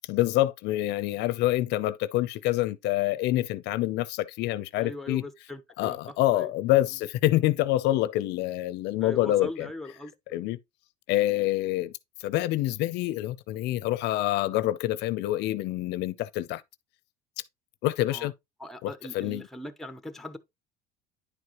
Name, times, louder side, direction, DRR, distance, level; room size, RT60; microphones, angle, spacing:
voice 1, 0.1-5.2 5.8-9.7 10.3-10.6 11.1-11.9 12.2-16.6 17.8-18.3 18.8-19.5, left 15 dB, 65° left, 0.6 m, -26 dB
voice 2, 4.8-6.0 6.3-6.5 9.0-10.4 18.1-18.3 18.6-20.4, left 2 dB, ahead, 0.8 m, -40 dB
10.0 x 4.7 x 3.0 m
cardioid pair, 135°, 19 cm